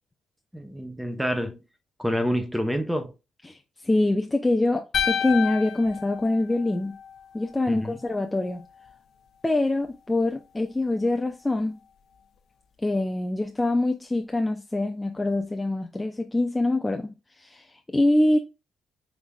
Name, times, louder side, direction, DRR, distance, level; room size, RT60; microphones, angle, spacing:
voice 1, 0.5-1.6 2.0-3.1 7.7-8.0, equal, 5° right, 1.0 m, -27 dB
voice 2, 3.4-7.0 7.3-8.7 9.4-11.8 12.8-18.4, left 2 dB, 15° left, 0.6 m, -25 dB
sound 1, 4.9-7.2, left 8 dB, 65° left, 1.0 m, -29 dB
5.6 x 3.4 x 2.4 m
cardioid pair, 90°, 0 cm